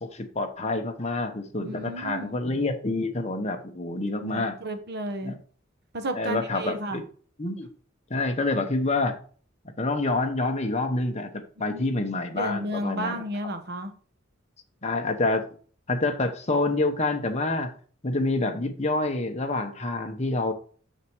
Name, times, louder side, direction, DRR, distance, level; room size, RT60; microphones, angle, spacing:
voice 1, 0.0-4.6 5.2-5.4 6.1-7.0 7.4-7.7 8.1-9.2 9.8-13.2 14.8-15.5 15.9-17.7 18.0-20.5, left 2 dB, 35° left, 1.1 m, -27 dB
voice 2, 1.5-2.3 4.2-5.4 5.9-7.0 11.7-12.0 12.4-13.9, right 1 dB, 55° right, 1.2 m, -33 dB
6.6 x 6.5 x 4.6 m
head